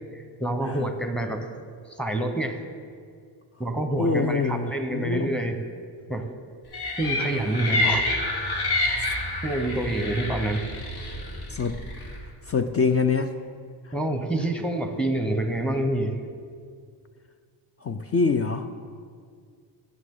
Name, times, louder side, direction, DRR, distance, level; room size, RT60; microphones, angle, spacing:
voice 1, 0.1-1.5 1.9-2.6 3.6-5.6 6.1-6.3 7.0-8.2 9.4-10.6 13.9-16.2, right 1 dB, ahead, 5 dB, 1.1 m, -27 dB
voice 2, 4.0-5.3 11.5-11.8 12.5-13.3 17.8-18.7, left 4 dB, 35° left, 8 dB, 0.4 m, -25 dB
sound 1, 6.7-12.2, left 2 dB, 60° left, 2.3 m, -28 dB
19.0 x 6.5 x 3.8 m, 2.1 s
cardioid pair, 100°, 45 cm